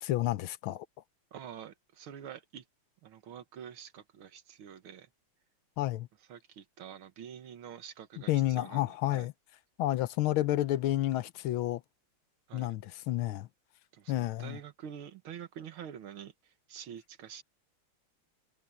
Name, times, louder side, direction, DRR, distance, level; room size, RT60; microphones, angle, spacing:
voice 1, 0.0-0.8 5.8-6.1 8.3-9.3 9.8-11.8 12.5-13.5 14.1-14.6, left 15 dB, 75° left, 1.5 m, -30 dB
voice 2, 1.3-2.6 3.0-5.1 6.3-9.3 12.5-12.7 13.9-17.4, right 9 dB, 75° right, 2.0 m, -47 dB
omnidirectional pair, 2.4 m